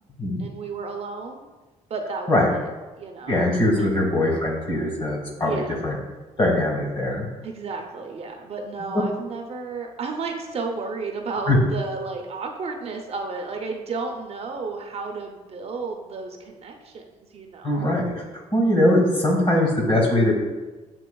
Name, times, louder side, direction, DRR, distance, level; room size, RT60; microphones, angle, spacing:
voice 1, 0.4-1.5 1.9-3.5 3.8-3.9 5.4-5.7 7.4-17.9, right 4 dB, 45° right, 3 dB, 0.6 m, -33 dB
voice 2, 3.3-5.9 6.4-7.2 11.5-11.6 17.6-20.3, left 1 dB, 40° left, -2 dB, 1.5 m, -21 dB
7.7 x 2.8 x 2.3 m, 1.2 s
cardioid pair, 110°, 14 cm